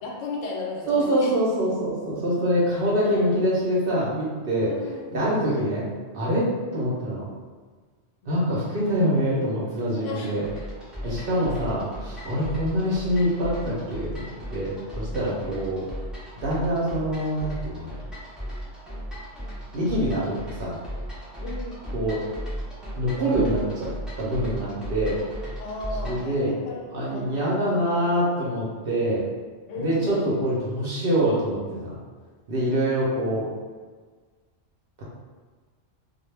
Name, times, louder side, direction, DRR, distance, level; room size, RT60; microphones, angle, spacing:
voice 1, 0.0-1.3 3.0-3.3 4.7-5.1 8.2-8.7 10.0-10.4 11.0-11.6 15.2-15.6 21.4-21.8 25.6-26.8 27.1-27.8 29.7-30.2, left 3 dB, 80° left, -2 dB, 0.9 m, -36 dB
voice 2, 0.9-4.7 5.1-5.9 6.1-7.2 8.3-10.4 11.0-15.9 16.4-17.9 19.7-20.3 20.6-20.8 21.9-22.2 23.0-23.9 24.2-25.2 26.0-26.5 26.9-29.2 29.8-32.0 32.5-33.5 35.0-35.1, equal, 55° right, -6 dB, 0.7 m, -25 dB
sound 1, 10.4-26.3, equal, ahead, 0.3 m, -36 dB
2.2 x 2.0 x 3.1 m, 1.5 s
omnidirectional pair, 1.3 m